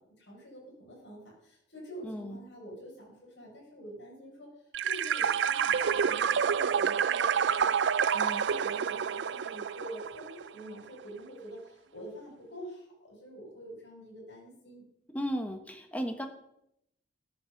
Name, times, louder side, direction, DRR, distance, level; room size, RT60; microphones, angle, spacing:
voice 1, 0.2-4.5 4.8-7.7 8.1-14.9, right 1 dB, 70° left, -3 dB, 5.3 m, -46 dB
voice 2, 2.0-2.4 15.1-16.3, equal, 10° left, 6 dB, 1.3 m, -34 dB
sound 1, 4.7-10.5, right 7 dB, 70° right, 0.4 m, -28 dB
13.5 x 8.5 x 6.0 m, 0.77 s
head